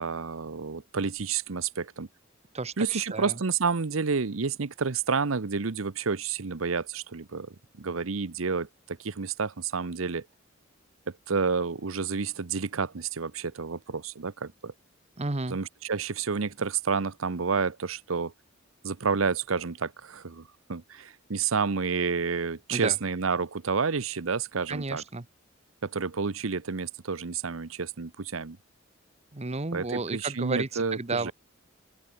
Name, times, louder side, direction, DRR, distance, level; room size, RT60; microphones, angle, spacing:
voice 1, 0.0-2.1 2.8-10.2 11.3-14.7 15.5-18.3 18.8-25.0 25.8-28.6 29.7-31.3, right 5 dB, 85° right, 0.9 m, -30 dB
voice 2, 2.5-3.4 15.2-15.6 22.7-23.0 24.7-25.2 29.3-31.3, right 3 dB, 35° right, 1.1 m, -32 dB
open air
head